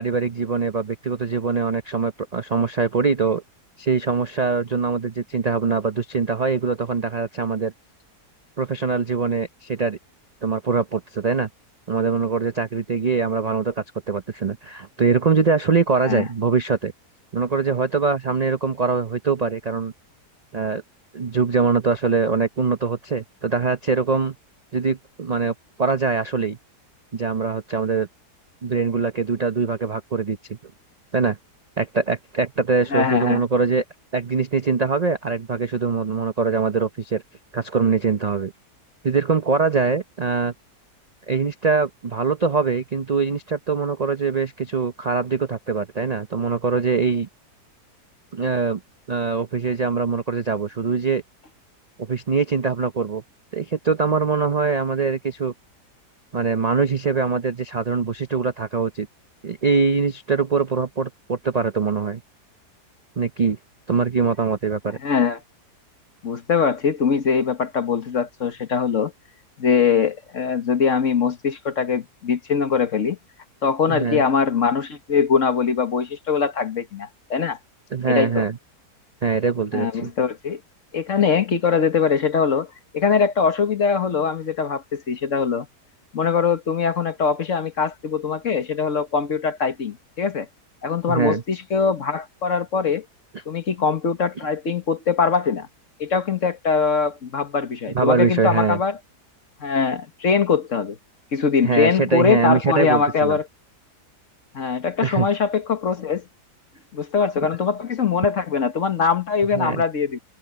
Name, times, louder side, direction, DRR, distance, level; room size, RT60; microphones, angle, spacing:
voice 1, 0.0-3.4 3.8-7.7 8.6-10.0 10.4-11.5 11.9-16.9 17.3-19.9 20.5-20.8 21.1-24.3 24.7-26.6 27.1-28.1 28.6-30.6 31.1-31.4 31.8-33.8 34.1-37.2 37.5-38.5 39.0-40.5 41.3-47.3 48.3-48.8 49.1-51.2 52.0-53.2 53.5-55.5 56.3-59.1 59.4-62.2 63.2-63.6 63.9-65.0 73.9-74.2 77.9-78.5 79.2-80.1 91.1-91.4 97.9-98.8 101.6-103.4 105.0-105.3 109.5-109.8, right 5 dB, 50° right, 0.4 m, -23 dB
voice 2, 32.9-33.4 65.0-65.4 66.2-69.1 69.6-73.2 73.6-77.6 78.1-78.5 79.7-80.6 80.9-82.7 82.9-85.7 86.1-90.5 90.8-93.0 93.5-95.7 96.0-99.0 99.6-101.0 101.3-103.4 104.5-106.2 106.9-110.2, left 6 dB, 50° left, 1.7 m, -22 dB
omnidirectional pair, 1.7 m